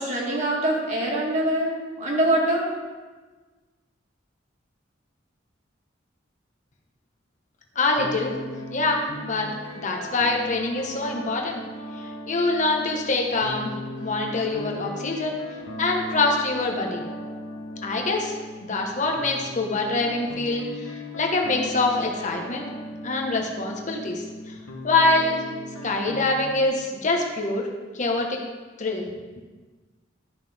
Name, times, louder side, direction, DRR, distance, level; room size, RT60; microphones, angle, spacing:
voice 1, 0.0-2.7, right 1 dB, 40° right, -3 dB, 2.0 m, -24 dB
sound 1, 7.7-26.7, left 1 dB, 85° left, 1.3 m, -38 dB
voice 2, 7.7-8.3 8.7-9.5 9.8-11.6 11.9-13.7 14.0-15.4 15.8-17.1 17.8-18.4 18.6-22.6 23.0-24.5 24.8-25.4 25.8-27.7 27.9-28.4 28.8-29.1, left 3 dB, 40° left, 1 dB, 1.2 m, -25 dB
13.0 x 5.8 x 3.6 m, 1.3 s
head